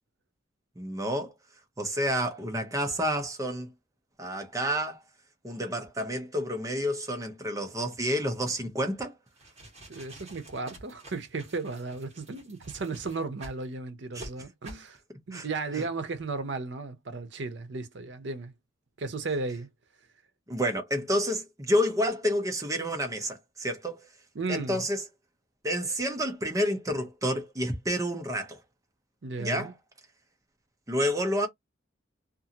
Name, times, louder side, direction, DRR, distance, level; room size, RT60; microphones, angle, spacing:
voice 1, 0.8-1.3 1.8-3.7 4.2-5.0 5.4-9.1 14.1-14.3 15.3-15.5 20.5-24.0 24.5-25.0 25.6-28.6 29.4-29.7 30.9-31.5, equal, 15° right, 0.6 m, -29 dB
sound 1, 9.3-13.6 14.1-14.3 14.6-14.9, right 1 dB, 35° right, 1.2 m, -48 dB
voice 2, 9.9-15.0 15.3-18.5 19.0-19.7 24.3-24.8 29.2-29.7, right 3 dB, 70° right, 0.7 m, -35 dB
2.6 x 2.5 x 2.7 m
head